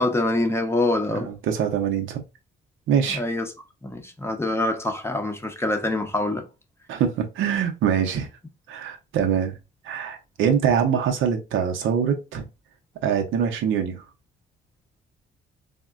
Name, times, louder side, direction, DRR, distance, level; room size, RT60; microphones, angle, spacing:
voice 1, 0.0-1.4 3.1-3.5 3.8-6.5, left 2 dB, 10° left, 0.6 m, -25 dB
voice 2, 1.1-2.2 2.9-3.2 6.9-8.3 8.7-9.5 9.8-12.5 13.0-14.0, right 8 dB, 80° right, 0.6 m, -24 dB
3.5 x 2.1 x 2.4 m
cardioid pair, 90°, 20 cm